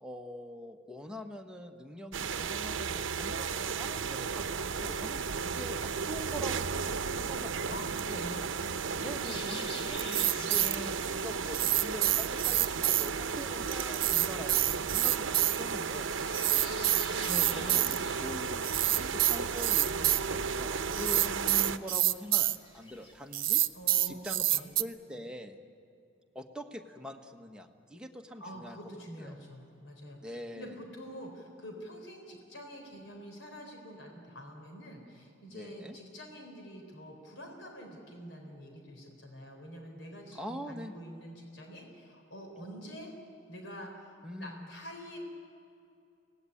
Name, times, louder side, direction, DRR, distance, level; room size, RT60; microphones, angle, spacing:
voice 1, 0.0-8.2 9.0-16.1 17.2-23.6 24.1-25.6 26.3-28.8 29.2-29.3 30.2-30.8 35.5-36.0 40.3-41.0 44.2-44.7, equal, 5° right, 3 dB, 1.3 m, -44 dB
sound 1, 2.1-21.8, right 5 dB, 80° right, 0.8 m, -34 dB
voice 2, 7.7-8.5 8.9-9.5 17.5-18.0 23.7-24.7 28.4-43.1 43.5-44.1 44.4-45.2, equal, 75° left, 2 dB, 4.0 m, -46 dB
sound 2, 9.2-23.1, left 1 dB, 30° left, 2.9 m, -49 dB
sound 3, 10.0-10.7 11.5-13.1 13.7-15.6 16.3-18.0 18.6-20.2 20.9-22.6 23.3-24.8, right 15 dB, 45° right, 0.7 m, -27 dB
24.5 x 18.5 x 10.0 m, 2.6 s
head